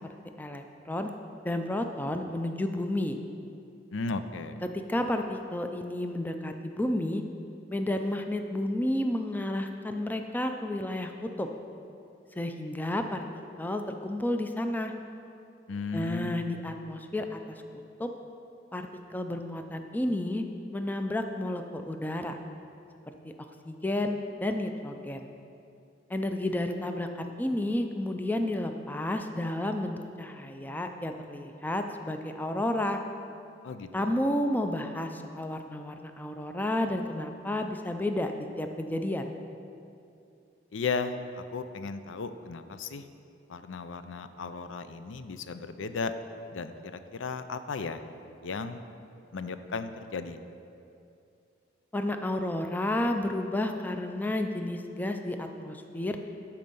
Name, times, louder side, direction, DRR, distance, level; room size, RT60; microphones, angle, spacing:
voice 1, 0.4-1.1 1.4-3.2 4.6-7.2 7.7-11.5 12.4-13.2 13.6-14.9 15.9-17.6 18.0-18.1 18.7-20.4 20.7-22.4 23.7-25.2 26.1-33.0 33.9-38.3 38.6-39.3 51.9-56.2, left 1 dB, 10° left, 6 dB, 0.4 m, -31 dB
voice 2, 3.9-4.6 15.7-16.5 33.6-34.2 40.7-43.1 43.5-46.1 46.5-48.0 48.4-48.8 49.3-50.4, left 4 dB, 85° left, 10 dB, 0.5 m, -35 dB
12.5 x 4.4 x 5.4 m, 2.6 s
head